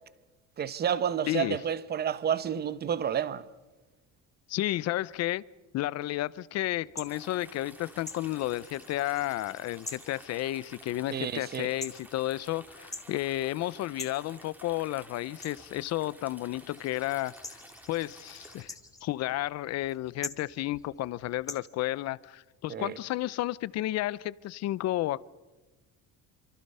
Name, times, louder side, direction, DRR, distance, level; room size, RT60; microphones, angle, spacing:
voice 1, 0.6-3.4 11.1-11.7 22.7-23.0, right 8 dB, 30° right, 0.8 m, -30 dB
voice 2, 1.3-1.6 4.5-5.4 5.7-17.6 17.9-18.7 19.0-25.2, left 15 dB, 55° left, 0.6 m, -32 dB
sound 1, 6.7-21.6, left 2 dB, 10° left, 1.8 m, -47 dB
sound 2, 7.1-18.6, right 1 dB, 5° right, 2.3 m, -52 dB
27.0 x 25.5 x 5.5 m
cardioid pair, 160°, 32 cm